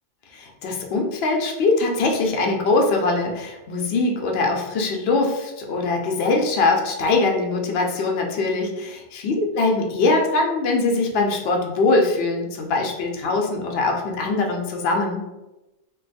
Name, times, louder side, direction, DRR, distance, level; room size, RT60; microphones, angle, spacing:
voice 1, 0.3-15.2, left 3 dB, 65° left, 2 dB, 0.8 m, -22 dB
2.6 x 2.2 x 3.9 m, 1.0 s
omnidirectional pair, 1.2 m